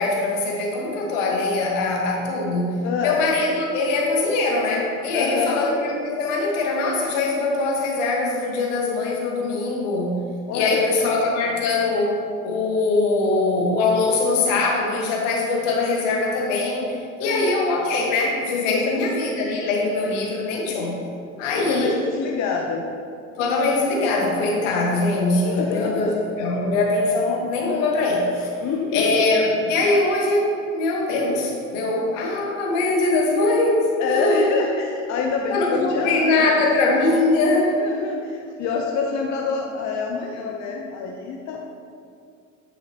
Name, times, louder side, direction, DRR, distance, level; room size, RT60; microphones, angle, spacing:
voice 1, 0.0-10.2 10.5-12.2 12.4-21.0 21.4-21.9 23.4-28.5 28.9-34.6 35.5-37.7, left 2 dB, 65° left, -1 dB, 1.6 m, -22 dB
voice 2, 2.8-3.2 5.1-5.6 10.5-11.1 17.2-17.6 18.7-18.9 21.5-22.9 25.4-26.1 28.6-29.1 34.0-36.8 37.8-41.6, left 5 dB, 45° left, 1 dB, 0.8 m, -26 dB
8.6 x 6.9 x 2.9 m, 2.4 s
figure-of-eight pair, 65°, 39 cm